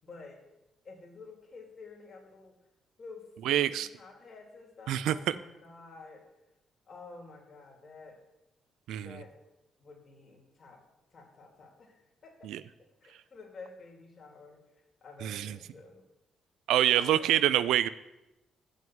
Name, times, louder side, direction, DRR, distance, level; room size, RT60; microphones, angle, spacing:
voice 1, 0.0-0.4 0.8-2.5 3.0-6.2 6.9-8.2 9.0-9.3 9.8-10.8 11.1-12.5 13.0-14.6 15.0-16.0 16.9-17.5, left 3 dB, 40° left, 1 dB, 2.8 m, -50 dB
voice 2, 3.5-3.9 4.9-5.4 8.9-9.2 12.4-12.6 15.2-15.6 16.7-17.9, right 12 dB, 85° right, 17 dB, 0.4 m, -26 dB
9.3 x 6.2 x 7.1 m, 0.95 s
cardioid pair, 90°, 0 cm